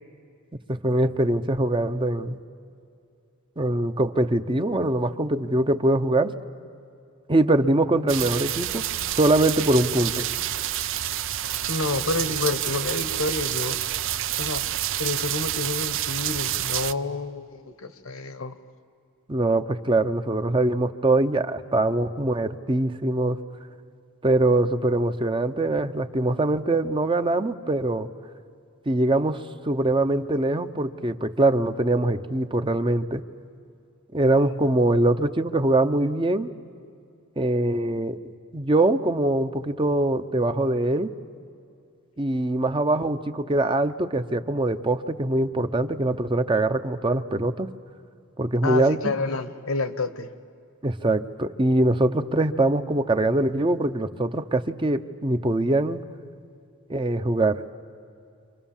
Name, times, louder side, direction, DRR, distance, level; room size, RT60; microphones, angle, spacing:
voice 1, 0.7-2.4 3.6-6.3 7.3-8.9 9.2-10.2 19.3-23.4 24.2-28.1 28.9-33.2 34.1-36.5 37.4-38.2 38.5-41.1 42.2-47.7 48.4-49.1 50.8-56.0 56.9-57.6, right 2 dB, 25° right, 9 dB, 0.8 m, -23 dB
sound 1, 8.1-16.9, right 12 dB, 65° right, 0.6 m, -28 dB
voice 2, 11.7-13.8 14.4-14.7 15.0-18.5 48.6-50.3, left 3 dB, 70° left, 12 dB, 1.3 m, -29 dB
30.0 x 26.0 x 7.3 m, 2.4 s
head